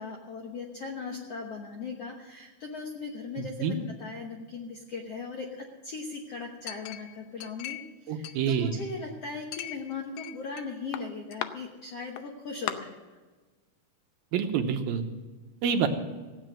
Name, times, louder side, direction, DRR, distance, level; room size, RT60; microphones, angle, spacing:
voice 1, 0.0-13.0, left 4 dB, 65° left, 0 dB, 1.5 m, -38 dB
voice 2, 3.4-3.8 8.1-8.7 14.3-15.1 15.6-15.9, right 7 dB, 75° right, 6 dB, 2.7 m, -27 dB
Chink clink, 6.7-7.9 8.2-9.0 9.5-10.6 10.9-11.5 12.2-12.3 12.7-12.8, left 12 dB, 90° left, 2.7 m, -38 dB
15.5 x 8.9 x 7.6 m, 1.3 s
omnidirectional pair, 4.5 m